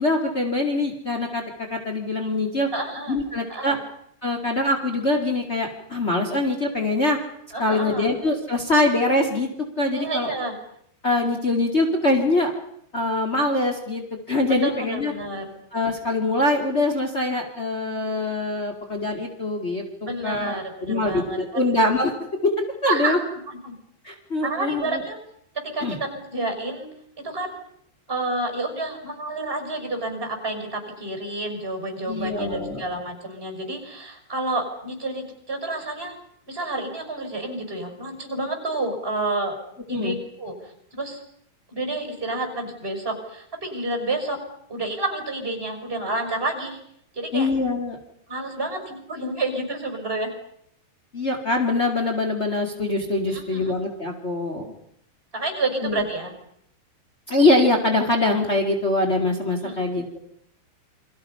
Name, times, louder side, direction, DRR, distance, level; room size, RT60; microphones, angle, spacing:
voice 1, 0.0-1.4 1.7-2.7 3.1-3.8 4.2-7.2 7.6-9.5 9.8-10.3 11.0-12.5 12.9-15.1 15.7-22.1 22.4-22.5 22.8-23.2 24.0-25.0 25.8-26.0 32.1-32.8 39.9-40.1 47.3-48.0 51.1-54.7 55.8-56.0 57.3-60.2, left 2 dB, 45° left, 2 dB, 0.8 m, -23 dB
voice 2, 2.7-3.2 3.5-3.8 7.5-8.1 9.9-10.5 14.5-15.5 20.0-21.4 22.8-23.7 24.4-25.2 25.6-26.9 27.2-27.6 28.1-36.2 36.5-39.6 39.9-41.2 41.7-44.4 44.7-46.8 47.1-47.5 48.3-50.3 53.3-53.7 55.3-56.3 59.6-59.8, right 2 dB, 10° right, 5 dB, 5.7 m, -29 dB
29.0 x 25.0 x 5.7 m, 0.72 s
omnidirectional pair, 5.3 m